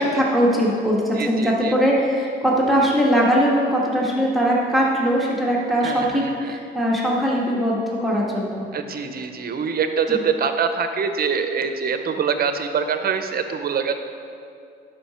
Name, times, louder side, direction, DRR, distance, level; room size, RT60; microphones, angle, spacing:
voice 1, 0.0-8.7 10.1-10.2, equal, ahead, -4 dB, 1.7 m, -20 dB
voice 2, 1.2-1.7 5.8-6.6 8.7-13.9, right 6 dB, 50° right, 8 dB, 0.7 m, -24 dB
11.5 x 5.1 x 4.3 m, 2.5 s
cardioid pair, 90°, 20 cm